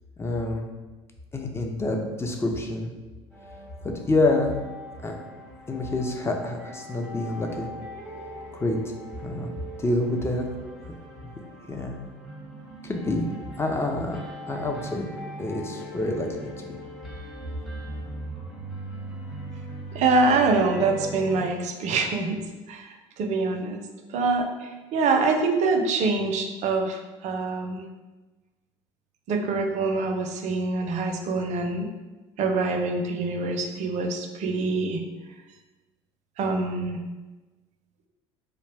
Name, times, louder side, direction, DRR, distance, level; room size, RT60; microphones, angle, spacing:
voice 1, 0.2-0.7 1.3-2.9 3.8-4.6 5.0-5.1 5.7-7.7 8.5-8.8 9.2-9.5 9.8-10.5 11.2-11.3 11.6-12.0 12.8-13.3 13.6-15.0 15.4-16.8, left 2 dB, 15° left, 2 dB, 0.5 m, -27 dB
sound 1, 3.3-21.4, right 1 dB, 5° right, 0.8 m, -40 dB
voice 2, 19.9-22.4 22.7-23.8 24.1-27.8 29.3-31.9 32.4-35.0 36.4-37.0, right 3 dB, 50° right, 5 dB, 0.4 m, -25 dB
2.4 x 2.0 x 3.2 m, 1.2 s
hypercardioid pair, 70°, 15 cm